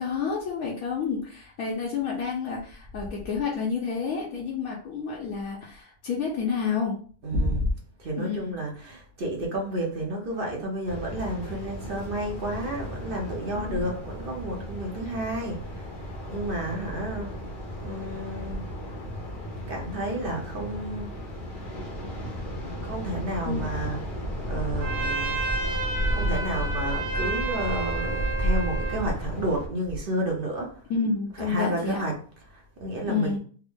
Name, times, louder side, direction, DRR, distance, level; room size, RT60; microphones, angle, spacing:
voice 1, 0.0-6.9 8.1-8.5 13.5-13.8 23.5-23.6 30.9-32.0 33.1-33.4, left 5 dB, 75° left, -4 dB, 1.2 m, -29 dB
voice 2, 7.2-7.7 8.0-15.9 16.3-17.3 17.8-18.6 19.7-21.1 22.8-24.0 24.5-25.5 26.1-30.7 31.4-32.1 32.5-33.4, right 1 dB, 45° right, -1 dB, 0.8 m, -31 dB
sound 1, 10.9-29.7, equal, 45° left, 0.8 m, -33 dB
Trumpet, 24.8-29.1, right 3 dB, 65° right, 1.3 m, -31 dB
3.4 x 2.0 x 3.6 m, 0.43 s
omnidirectional pair, 1.6 m